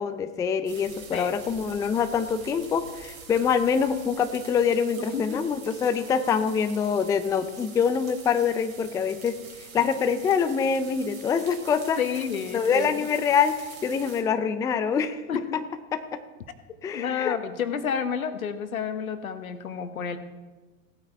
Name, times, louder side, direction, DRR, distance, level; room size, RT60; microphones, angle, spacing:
voice 1, 0.0-9.4 9.7-12.0 12.5-15.2 15.5-15.6 15.9-16.2 16.8-17.4, left 6 dB, 10° left, 10 dB, 0.4 m, -25 dB
sound 1, 0.7-14.2, right 5 dB, 75° right, 3.3 m, -45 dB
voice 2, 12.0-13.1 15.3-15.4 16.9-20.2, left 7 dB, 80° left, 10 dB, 1.2 m, -30 dB
16.5 x 9.0 x 4.6 m, 1.3 s
hypercardioid pair, 100°, 41 cm